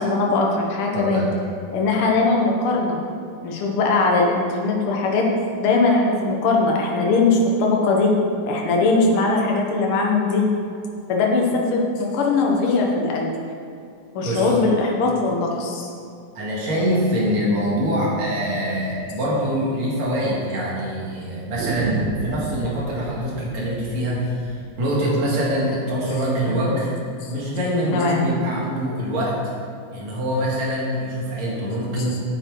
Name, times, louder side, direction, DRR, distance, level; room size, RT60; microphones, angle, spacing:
voice 1, 0.0-1.3 1.7-3.0 3.4-5.3 5.6-8.1 8.4-10.4 11.1-13.3 14.1-15.9 26.5-26.7 27.9-28.2 32.0-32.1, left 3 dB, 55° left, -1 dB, 1.6 m, -20 dB
voice 2, 0.9-1.3 14.2-14.5 16.3-27.0 27.3-29.4 29.9-32.2, equal, 55° right, -5 dB, 3.0 m, -24 dB
sound 1, 18.8-18.9 19.2-19.3 19.6-19.7 20.4-20.9 21.6-26.4, right 7 dB, 85° right, 2.4 m, -34 dB
9.0 x 8.8 x 4.8 m, 2.4 s
omnidirectional pair, 4.0 m